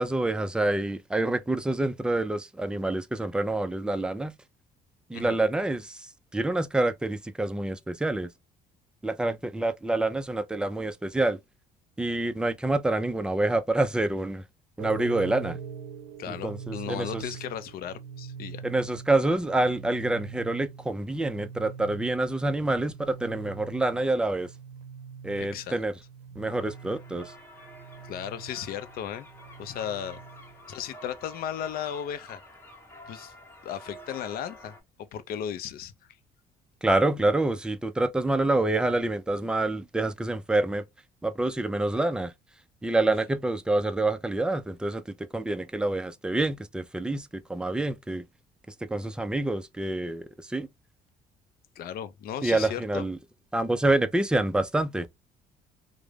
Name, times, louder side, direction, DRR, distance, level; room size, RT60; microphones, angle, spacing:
voice 1, 0.0-4.3 5.1-8.3 9.0-11.4 12.0-14.4 14.8-15.6 16.3-17.2 18.6-24.5 25.2-25.9 26.4-27.3 36.8-40.8 41.2-42.3 42.8-48.2 48.8-50.7 52.4-53.2 53.5-55.1, right 2 dB, 5° right, 0.3 m, -27 dB
sound 1, 14.8-30.6, right 6 dB, 85° right, 0.5 m, -43 dB
voice 2, 16.2-18.6 25.4-25.8 28.0-29.3 29.6-30.2 30.7-32.4 33.1-33.3 33.6-34.7 35.1-35.9 51.8-53.1, left 9 dB, 60° left, 0.4 m, -35 dB
sound 2, 26.5-34.8, left 1 dB, 15° left, 0.7 m, -49 dB
2.3 x 2.0 x 3.1 m
cardioid pair, 110°, 17 cm